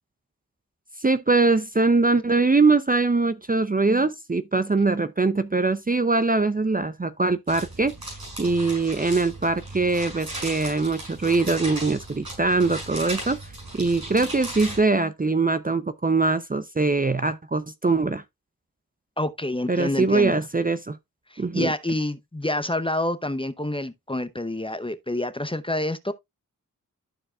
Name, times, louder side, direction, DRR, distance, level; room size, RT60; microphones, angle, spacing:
voice 1, 1.0-7.9 8.4-13.4 13.7-18.2 19.7-21.0 21.4-21.7, right 3 dB, 25° right, 0.5 m, -22 dB
sound 1, 7.5-14.8, right 1 dB, 85° right, 6.1 m, -37 dB
voice 2, 19.2-20.4 21.3-26.1, left 1 dB, 15° left, 0.7 m, -28 dB
13.5 x 4.6 x 2.3 m
cardioid pair, 45°, 36 cm